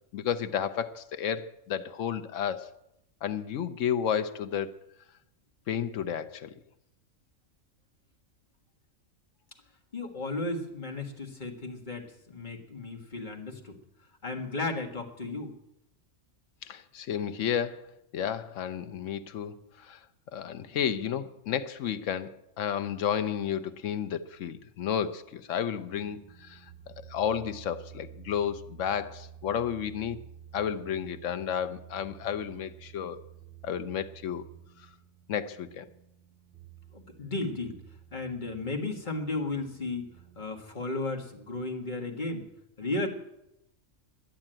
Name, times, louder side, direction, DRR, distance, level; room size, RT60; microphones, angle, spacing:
voice 1, 0.1-2.7 3.2-4.7 5.7-6.5 16.6-17.8 18.1-20.0 20.3-26.6 27.0-30.2 30.5-33.2 33.6-34.4 35.3-35.8, left 8 dB, 70° left, 1.1 m, -32 dB
voice 2, 9.9-13.8 14.2-15.5 36.9-37.8 38.1-40.1 40.3-42.5 42.8-43.1, left 2 dB, 35° left, 1.7 m, -34 dB
sound 1, 25.8-40.4, right 10 dB, 40° right, 3.7 m, -51 dB
11.5 x 8.5 x 8.9 m
omnidirectional pair, 1.4 m